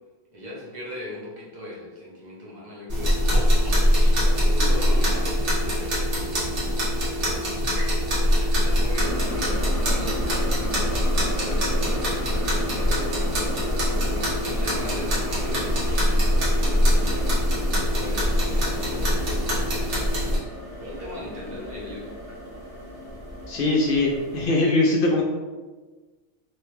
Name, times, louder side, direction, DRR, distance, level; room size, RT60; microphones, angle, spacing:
voice 1, 0.3-3.6 4.2-6.3 7.1-7.4 8.2-17.3 17.7-20.4 20.8-22.1, left 1 dB, 40° right, -5 dB, 0.9 m, -39 dB
sound 1, 2.9-20.4, equal, 75° right, 1.3 m, -23 dB
sound 2, 8.9-24.5, equal, 20° right, 0.7 m, -35 dB
voice 2, 23.5-25.2, left 2 dB, 60° left, -1 dB, 0.6 m, -21 dB
3.0 x 2.3 x 3.1 m, 1.2 s
omnidirectional pair, 1.2 m